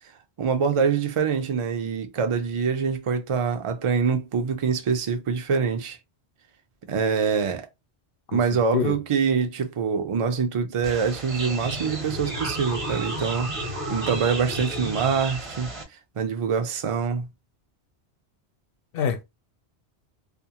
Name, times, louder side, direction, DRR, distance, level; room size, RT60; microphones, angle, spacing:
voice 1, 0.4-6.0 6.9-7.7 8.3-13.5 13.9-15.7 16.2-17.3, right 6 dB, 55° right, 0.3 m, -25 dB
voice 2, 8.3-9.0 18.9-19.2, left 7 dB, 65° left, 0.7 m, -27 dB
sound 1, 10.8-15.8, right 1 dB, 35° right, 0.7 m, -32 dB
2.5 x 2.3 x 2.8 m
omnidirectional pair, 1.1 m